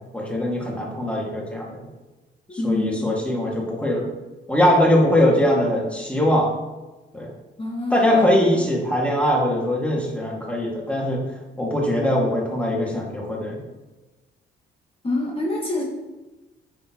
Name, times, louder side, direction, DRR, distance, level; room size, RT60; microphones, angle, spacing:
voice 1, 0.1-1.9 2.5-4.0 4.5-6.5 7.1-7.3 7.9-11.2 11.6-13.6, left 1 dB, 5° left, -2 dB, 2.1 m, -21 dB
voice 2, 2.6-3.0 7.6-8.3 15.0-15.8, left 2 dB, 30° left, -3 dB, 1.7 m, -25 dB
8.6 x 6.5 x 3.0 m, 1.1 s
cardioid pair, 90°, 20 cm